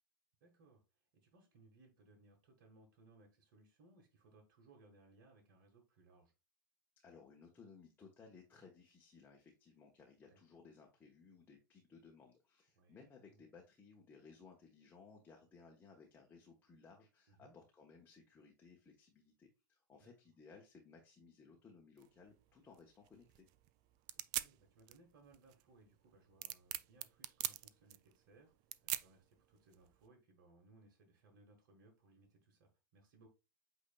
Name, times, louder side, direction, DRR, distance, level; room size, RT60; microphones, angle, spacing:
voice 1, 0.4-6.3 10.2-10.4 12.7-13.0 13.3-13.4 17.3-17.5 20.0-20.1 24.3-28.5 28.8-33.3, right 3 dB, 55° right, 2 dB, 1.4 m, -66 dB
voice 2, 7.0-23.4, left 5 dB, 15° left, 0 dB, 1.0 m, -61 dB
sound 1, 22.0-30.1, right 15 dB, 40° right, 0.3 m, -46 dB
8.2 x 2.8 x 2.2 m, 0.29 s
hypercardioid pair, 105°, 11 cm